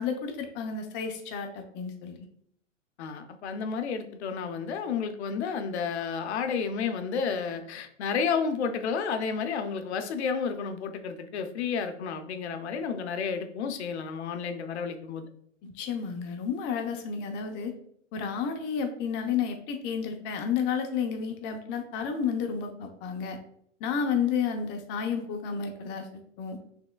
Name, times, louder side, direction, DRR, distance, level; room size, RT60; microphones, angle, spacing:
voice 1, 0.0-2.3 15.6-17.7 18.1-23.4 23.8-26.1 26.4-26.6, left 6 dB, 30° left, 5 dB, 0.8 m, -31 dB
voice 2, 3.0-15.3, left 6 dB, 60° left, 8 dB, 0.8 m, -31 dB
5.9 x 3.6 x 2.3 m, 0.67 s
hypercardioid pair, 115°, 38 cm